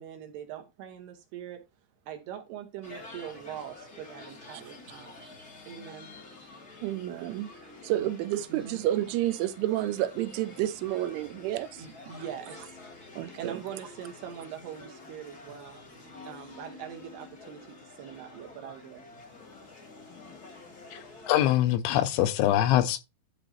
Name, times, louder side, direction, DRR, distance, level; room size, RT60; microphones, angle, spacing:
voice 1, 0.0-1.6 2.1-5.3 5.7-6.1 7.9-8.1 8.5-8.8 11.8-12.8 13.4-15.8 16.2-19.1, right 9 dB, 70° right, 2.7 m, -42 dB
sound 1, 2.8-21.4, left 3 dB, 45° left, 1.2 m, -49 dB
voice 2, 6.8-7.5 7.8-11.8 13.2-13.6, right 14 dB, 85° right, 3.1 m, -30 dB
voice 3, 20.9-23.0, left 13 dB, 80° left, 3.1 m, -24 dB
11.5 x 4.3 x 4.2 m
omnidirectional pair, 5.5 m